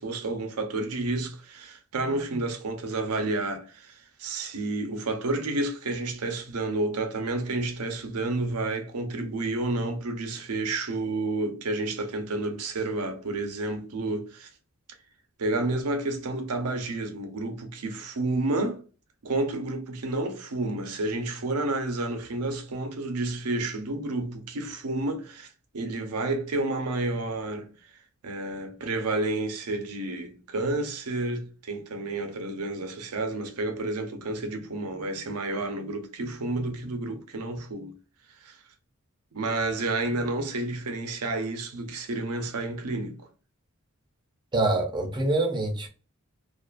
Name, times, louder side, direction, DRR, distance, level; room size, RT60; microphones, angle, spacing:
voice 1, 0.0-14.5 15.4-18.8 19.2-25.5 25.7-27.7 28.2-37.9 38.4-38.6 39.3-43.2, right 2 dB, 85° right, 0.6 m, -30 dB
voice 2, 44.5-45.9, right 2 dB, 20° right, 0.6 m, -25 dB
2.4 x 2.3 x 2.4 m
head